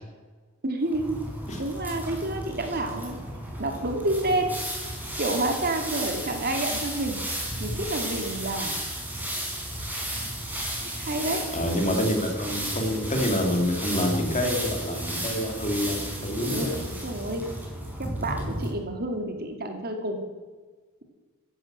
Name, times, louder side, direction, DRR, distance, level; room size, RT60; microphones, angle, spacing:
voice 1, 0.6-1.2 1.6-3.2 3.6-4.6 5.2-7.2 7.6-8.8 10.8-11.4 16.4-17.5 18.0-20.2, right 2 dB, 45° right, 5 dB, 2.6 m, -29 dB
sound 1, 0.9-18.7, right 1 dB, 10° right, 4.9 m, -33 dB
voice 2, 11.5-16.8 18.4-18.5, left 1 dB, 35° left, 4 dB, 2.8 m, -27 dB
15.5 x 11.5 x 7.6 m, 1.4 s
head